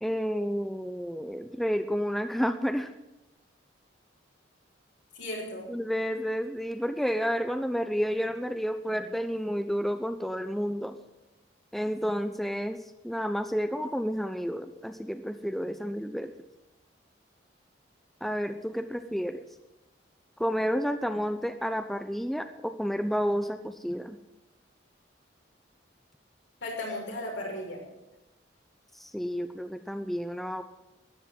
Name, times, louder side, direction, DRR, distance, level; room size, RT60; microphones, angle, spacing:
voice 1, 0.0-2.9 5.7-10.9 11.7-12.8 13.0-16.3 18.2-19.4 20.4-24.2 28.9-30.6, equal, ahead, 8 dB, 0.6 m, -30 dB
voice 2, 5.1-5.7 26.6-27.8, left 1 dB, 80° left, -2 dB, 6.1 m, -35 dB
13.5 x 9.9 x 9.4 m, 0.94 s
head